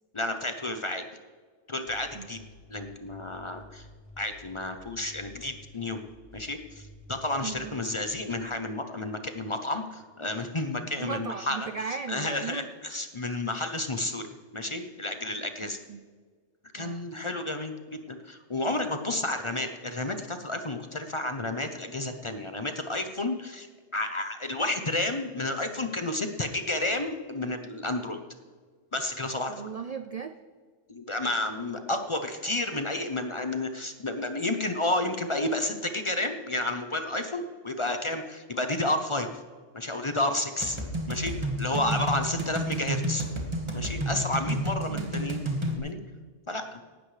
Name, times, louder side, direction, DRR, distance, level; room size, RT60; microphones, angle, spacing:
voice 1, 0.1-1.0 1.7-2.4 2.7-3.9 4.2-6.0 6.3-11.7 12.1-14.3 14.5-15.8 16.7-23.7 23.9-28.2 28.9-29.7 30.9-39.3 39.7-40.8 41.1-41.3 41.6-43.2 43.7-45.4 45.8-46.0 46.5-46.8, left 2 dB, 30° left, 7 dB, 0.6 m, -31 dB
sound 1, 1.9-8.5, left 1 dB, 55° left, 2.6 m, -51 dB
voice 2, 7.4-7.8 11.0-12.7 15.6-16.0 16.7-17.0 29.5-30.4 41.7-42.0 44.8-45.1, right 6 dB, 70° right, 10 dB, 0.3 m, -37 dB
sound 2, 40.6-45.8, right 1 dB, 25° right, 1.5 m, -31 dB
17.5 x 12.5 x 3.3 m, 1.5 s
omnidirectional pair, 1.3 m